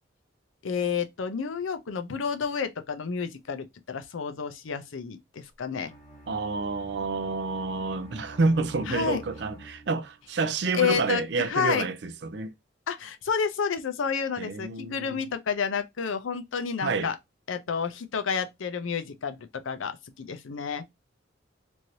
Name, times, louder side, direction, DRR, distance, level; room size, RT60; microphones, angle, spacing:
voice 1, 0.6-5.9 8.9-9.2 10.7-11.9 12.9-17.2 17.5-20.8, left 6 dB, 85° left, 0.5 m, -30 dB
Bowed string instrument, 5.8-10.2, right 1 dB, 35° left, 1.8 m, -47 dB
voice 2, 6.3-12.5 14.4-15.3 16.8-17.1, right 3 dB, 60° right, 0.4 m, -29 dB
3.1 x 2.6 x 2.7 m
head